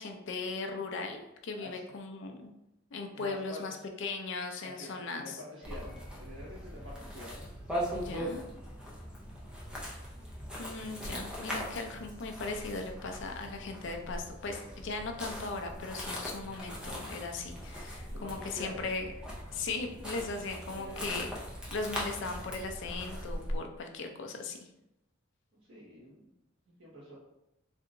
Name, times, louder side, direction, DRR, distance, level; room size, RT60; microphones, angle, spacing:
voice 1, 0.0-2.5 2.9-5.4 7.9-8.4 10.6-19.1 19.5-21.3 21.7-24.6, left 3 dB, 65° left, 4 dB, 0.5 m, -38 dB
voice 2, 3.1-3.8 4.6-7.4 9.5-10.0 18.1-18.9 20.7-21.1 25.7-26.3 26.7-27.2, left 1 dB, 70° right, -7 dB, 1.5 m, -47 dB
sound 1, 5.6-23.6, equal, 5° right, 0.5 m, -40 dB
3.4 x 2.8 x 2.5 m, 0.89 s
head